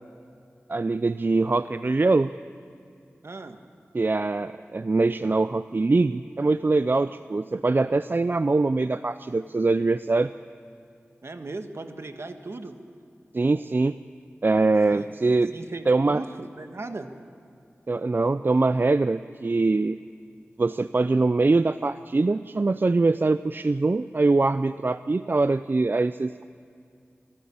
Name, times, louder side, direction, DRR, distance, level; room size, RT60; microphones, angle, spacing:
voice 1, 0.7-2.3 3.9-10.3 13.3-14.0 14.4-15.6 15.9-16.2 17.9-20.0 20.6-26.5, right 3 dB, 45° right, 13 dB, 0.4 m, -23 dB
voice 2, 3.2-3.6 11.2-12.8 14.9-15.1 15.5-17.1, right 2 dB, 65° right, 7 dB, 1.4 m, -37 dB
26.5 x 13.0 x 8.7 m, 2.4 s
cardioid pair, 40°, 5 cm